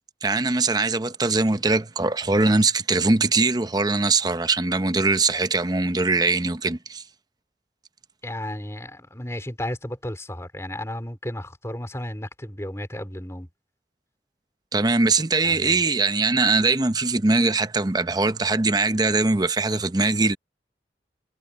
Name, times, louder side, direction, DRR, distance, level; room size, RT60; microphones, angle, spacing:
voice 1, 0.2-7.0 14.7-20.4, right 3 dB, 20° right, 0.7 m, -21 dB
voice 2, 8.2-13.5 15.4-15.8, left 1 dB, 15° left, 4.0 m, -33 dB
head